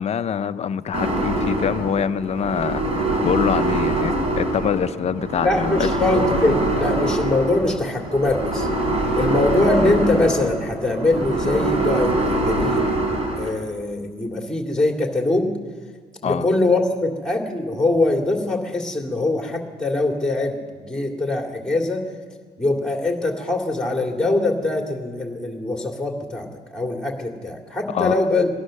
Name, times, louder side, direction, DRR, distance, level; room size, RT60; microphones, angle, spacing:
voice 1, 0.0-5.9 16.2-16.5 27.9-28.3, left 7 dB, 40° left, 12 dB, 0.6 m, -25 dB
sound 1, 0.9-13.5, right 1 dB, 35° right, 4.3 m, -24 dB
voice 2, 5.4-8.7 9.2-13.0 13.4-15.5 16.2-22.0 22.6-28.5, left 2 dB, 5° left, 2 dB, 2.5 m, -22 dB
18.0 x 11.5 x 6.4 m, 1.5 s
cardioid pair, 110°, 17 cm